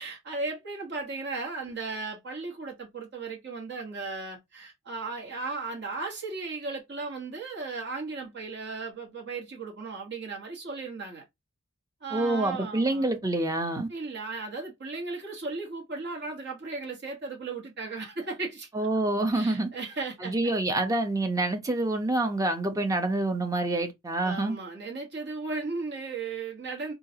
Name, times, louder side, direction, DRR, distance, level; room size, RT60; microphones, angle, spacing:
voice 1, 0.0-11.2 12.0-13.1 13.9-18.9 19.3-20.5 24.2-26.9, right 3 dB, 55° right, 1.3 m, -36 dB
voice 2, 12.1-13.9 18.7-19.7 20.2-24.6, right 2 dB, 15° right, 0.6 m, -27 dB
3.7 x 2.4 x 2.7 m
head